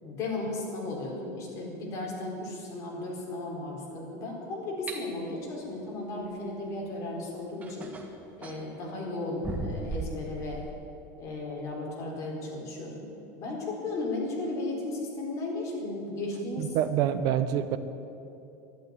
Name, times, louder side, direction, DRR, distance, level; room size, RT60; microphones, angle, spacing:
voice 1, 0.0-7.9 8.4-10.6 11.2-13.1 13.4-16.7, left 2 dB, 35° left, -2 dB, 4.3 m, -35 dB
sound 1, 4.9-5.0 6.9-7.0 7.6-8.6 9.4-10.7, right 2 dB, 15° right, 1.6 m, -36 dB
voice 2, 16.6-17.8, right 10 dB, 50° right, 10 dB, 1.0 m, -26 dB
12.0 x 11.5 x 9.8 m, 2.7 s
supercardioid pair, 160°, 9 cm